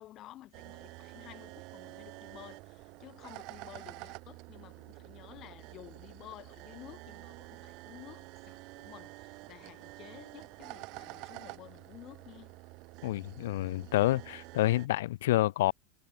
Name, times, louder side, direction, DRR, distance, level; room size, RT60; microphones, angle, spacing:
voice 1, 0.0-12.5, left 14 dB, 35° left, 1.8 m, -52 dB
sound 1, 0.5-14.9, right 25 dB, 50° right, 3.1 m, -48 dB
voice 2, 13.0-15.7, left 16 dB, 80° left, 0.3 m, -28 dB
supercardioid pair, 150°, 0 cm